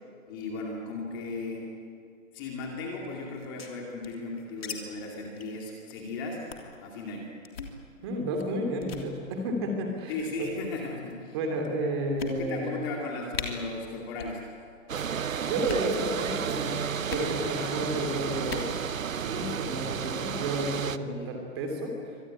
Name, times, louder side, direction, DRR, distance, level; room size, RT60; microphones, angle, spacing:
voice 1, 0.3-1.7 2.3-6.4 6.8-7.3 10.1-11.3 12.3-14.4 17.5-17.8 21.1-21.3, left 3 dB, 15° left, -1 dB, 2.4 m, -36 dB
sound 1, 3.3-4.8 5.0-5.1 5.4-5.6 5.9-6.1 6.5-6.8 7.4-7.8 8.4-8.5 8.8-9.1 10.0-10.4 11.1-11.2 11.6-11.7 12.2-12.7 13.0-13.1 13.3-13.5 14.1-14.4 14.7-15.1 15.5-15.9 17.1-17.3 18.4-18.7, left 5 dB, 50° left, 3.3 m, -38 dB
voice 2, 8.0-10.5 11.3-12.7 15.4-16.8 17.1-18.7 19.2-22.0, right 1 dB, 20° right, 3 dB, 2.9 m, -31 dB
sound 2, 14.9-21.0, right 7 dB, 80° right, 1.2 m, -32 dB
25.0 x 20.0 x 9.8 m, 2.3 s
hypercardioid pair, 175°, 40 cm